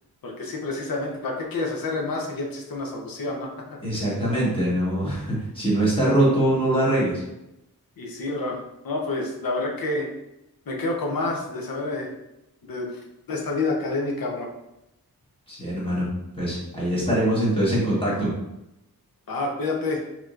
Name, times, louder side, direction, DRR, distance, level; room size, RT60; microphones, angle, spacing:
voice 1, 0.2-3.5 8.0-8.6 8.8-10.1 10.7-12.1 12.6-13.0 13.3-14.5 19.3-20.0, left 2 dB, 65° left, 0 dB, 0.9 m, -28 dB
voice 2, 3.8-7.2 15.5-16.0 16.3-18.3, right 1 dB, 15° left, -8 dB, 1.3 m, -23 dB
4.7 x 2.9 x 2.5 m, 0.87 s
wide cardioid pair, 170°, 37 cm